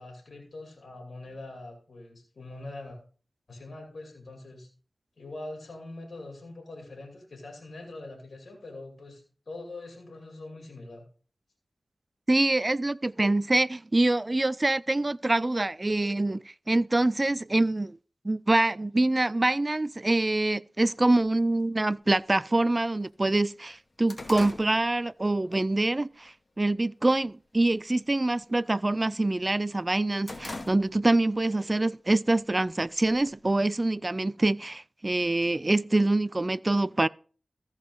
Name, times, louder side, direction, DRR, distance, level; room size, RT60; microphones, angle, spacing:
voice 1, 0.0-3.0 3.5-4.7 5.2-11.1, left 2 dB, 70° left, 2.6 m, -43 dB
voice 2, 12.3-18.0 18.2-37.1, right 2 dB, 35° right, 0.4 m, -25 dB
sound 1, 21.2-21.3 22.2-22.3 22.8-22.9 23.2-25.6 26.0-26.3 26.8-27.3 27.5-27.8 28.1-29.4 29.8-31.3 31.6-31.7 32.6-33.5, left 2 dB, 40° left, 2.1 m, -43 dB
14.5 x 4.8 x 5.5 m
cardioid pair, 45°, 0 cm